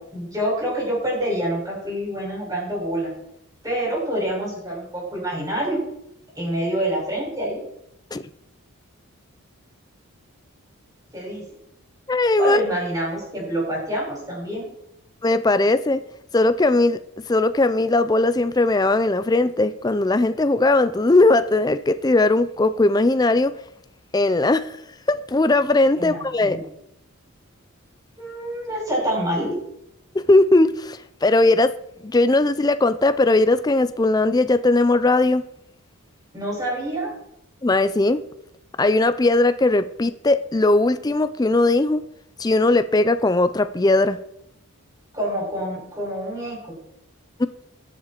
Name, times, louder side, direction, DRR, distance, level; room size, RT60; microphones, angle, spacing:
voice 1, 0.1-3.1 3.6-5.8 6.4-7.6 11.1-11.4 12.4-14.7 26.0-26.6 28.2-29.5 36.3-37.1 45.1-46.7, right 1 dB, 15° right, -3 dB, 6.1 m, -26 dB
voice 2, 12.1-12.6 15.2-16.0 16.3-17.0 17.3-23.5 24.1-24.7 25.1-26.6 30.1-31.7 32.0-35.4 37.6-38.2 38.8-42.0 42.4-44.2 47.4-47.5, left 2 dB, 15° left, 12 dB, 0.4 m, -19 dB
20.5 x 7.6 x 4.5 m, 0.79 s
head